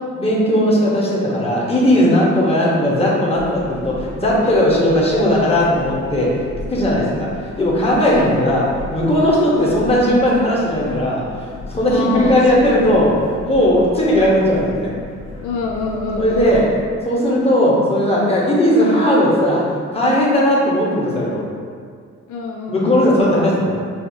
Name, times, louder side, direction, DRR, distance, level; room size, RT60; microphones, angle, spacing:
voice 1, 0.2-6.3 6.7-13.1 13.4-14.9 16.2-16.6 17.0-19.6 19.9-21.4 22.7-23.7, equal, 20° left, -5 dB, 1.1 m, -17 dB
sound 1, 3.3-16.8, left 2 dB, 60° left, 1.4 m, -34 dB
voice 2, 7.0-7.4 8.1-8.3 11.9-12.3 12.6-12.8 15.4-16.7 22.3-23.2, left 4 dB, 80° left, 0 dB, 0.5 m, -27 dB
5.7 x 2.7 x 2.8 m, 2.1 s
cardioid pair, 90°, 30 cm